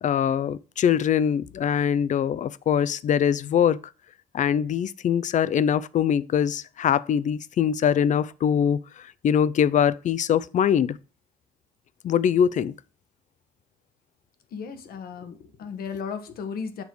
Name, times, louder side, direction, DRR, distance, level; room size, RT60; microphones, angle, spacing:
voice 1, 0.0-3.8 4.3-11.0 12.0-12.7, left 8 dB, 50° left, 0.5 m, -23 dB
voice 2, 14.5-16.8, left 6 dB, 65° left, 1.2 m, -35 dB
7.2 x 3.4 x 6.1 m
supercardioid pair, 70°, 16 cm